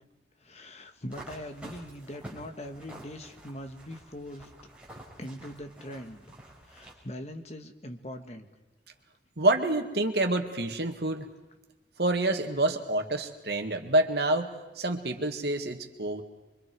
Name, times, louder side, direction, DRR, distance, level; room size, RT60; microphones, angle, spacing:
voice 1, 0.4-4.5 5.2-6.2 6.6-8.5, equal, 40° left, 6 dB, 1.6 m, -41 dB
sound 1, 1.1-6.9, right 1 dB, 5° right, 4.9 m, -48 dB
voice 2, 9.4-11.3 12.0-16.2, right 2 dB, 70° right, 5 dB, 2.2 m, -27 dB
25.5 x 25.0 x 4.7 m, 1.2 s
head